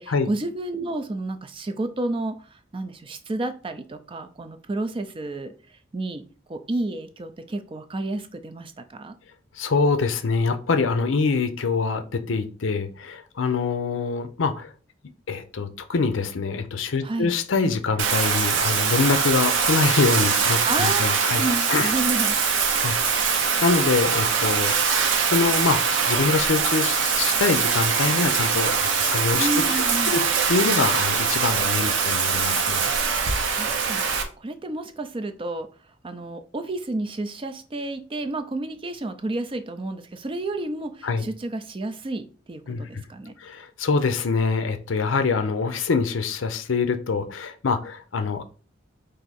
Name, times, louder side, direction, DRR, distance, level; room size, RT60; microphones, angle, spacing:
voice 1, 0.0-6.2 6.5-9.2 17.0-17.3 20.6-22.4 29.4-30.1 33.5-34.1 34.4-35.7 36.0-43.3, right 2 dB, 25° right, 9 dB, 0.4 m, -31 dB
voice 2, 9.6-14.7 15.3-21.4 21.7-21.9 22.8-25.0 25.2-25.8 26.1-32.9 41.0-41.3 42.7-43.0 43.4-48.4, left 4 dB, 85° left, 9 dB, 0.6 m, -25 dB
Bathtub (filling or washing), 18.0-34.2, right 6 dB, 90° right, 0.7 m, -22 dB
4.7 x 2.6 x 4.1 m, 0.38 s
head